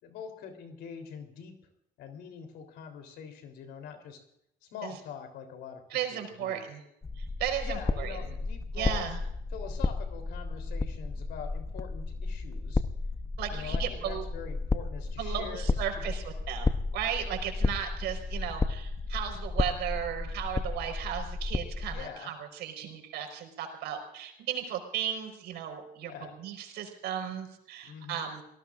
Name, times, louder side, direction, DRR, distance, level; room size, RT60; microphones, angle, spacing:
voice 1, 0.0-1.6 2.0-4.2 4.6-6.6 7.6-9.1 9.5-12.8 13.5-16.0 21.9-22.3 26.0-26.3 27.8-28.3, left 7 dB, 80° left, 5 dB, 3.5 m, -44 dB
voice 2, 5.9-6.8 7.2-8.3 8.7-9.2 13.4-14.2 15.2-28.4, right 9 dB, 85° right, 3 dB, 4.8 m, -35 dB
sound 1, 7.0-22.1, left 3 dB, 20° left, 0.8 m, -33 dB
29.5 x 18.5 x 2.5 m, 0.78 s
cardioid pair, 110°, 17 cm